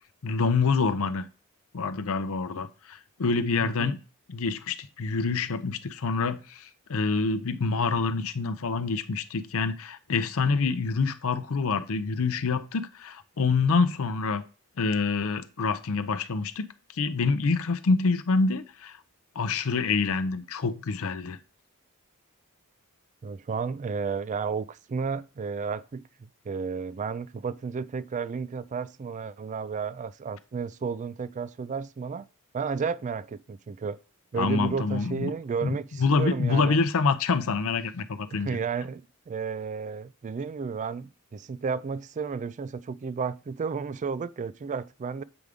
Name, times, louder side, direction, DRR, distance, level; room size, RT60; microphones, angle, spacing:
voice 1, 0.2-1.2 1.7-4.0 4.3-14.4 14.8-16.7 16.9-19.0 19.4-21.4 34.4-35.3 35.6-38.6, left 4 dB, 65° left, 0.6 m, -26 dB
voice 2, 3.6-3.9 23.2-32.2 32.5-34.0 34.3-36.8 38.3-45.2, right 5 dB, 35° right, 0.3 m, -32 dB
7.9 x 4.9 x 3.6 m
head